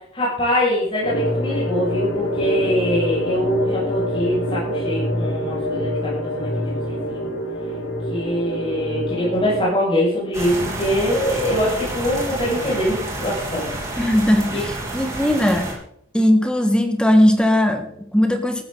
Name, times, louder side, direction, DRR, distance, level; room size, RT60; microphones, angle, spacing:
voice 1, 0.1-7.3 8.1-14.0 14.5-14.6, equal, 30° left, -8 dB, 6.6 m, -23 dB
sound 1, 1.0-9.6, left 1 dB, 85° left, 4.6 m, -25 dB
sound 2, 10.3-15.7, right 2 dB, 15° right, 4.1 m, -29 dB
voice 2, 14.0-15.7 16.1-18.6, left 1 dB, 5° left, 6 dB, 1.6 m, -18 dB
14.5 x 13.0 x 4.0 m, 0.69 s
head